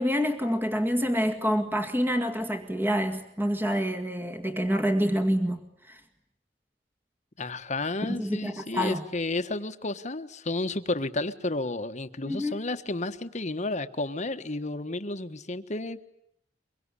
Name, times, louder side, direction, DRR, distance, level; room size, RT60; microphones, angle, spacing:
voice 1, 0.0-6.0 8.1-9.0 12.3-12.6, equal, 15° right, 7 dB, 2.0 m, -27 dB
voice 2, 7.4-16.0, left 2 dB, 45° left, 9 dB, 1.4 m, -32 dB
24.5 x 23.5 x 9.9 m, 0.71 s
head